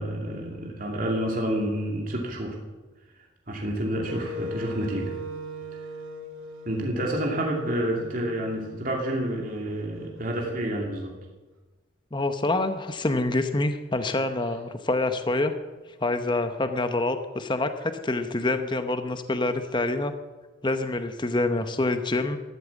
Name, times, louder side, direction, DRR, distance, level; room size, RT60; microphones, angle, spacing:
voice 1, 0.0-2.6 3.5-5.2 6.6-11.1, right 1 dB, 45° right, -1 dB, 2.6 m, -29 dB
Wind instrument woodwind instrument, 4.0-10.1, equal, 85° right, 2.6 m, -40 dB
voice 2, 12.1-15.5 16.0-20.1 20.6-22.4, left 2 dB, 25° left, 8 dB, 0.9 m, -26 dB
14.0 x 12.0 x 7.3 m, 1.2 s
head